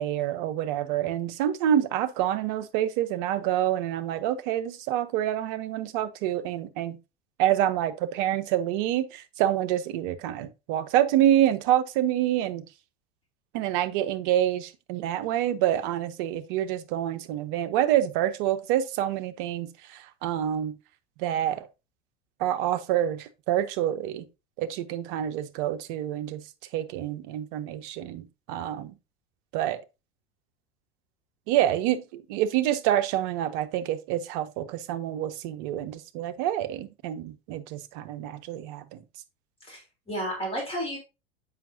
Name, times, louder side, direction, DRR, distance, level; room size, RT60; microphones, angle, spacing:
voice 1, 0.0-7.0 7.4-12.7 13.5-20.8 21.2-21.7 22.4-24.3 24.6-26.5 26.7-29.0 29.5-29.8 31.5-39.0, right 11 dB, 50° right, 0.8 m, -27 dB
voice 2, 39.6-41.0, equal, 20° left, 3.4 m, -32 dB
7.4 x 5.7 x 2.7 m
figure-of-eight pair, 80°, 32 cm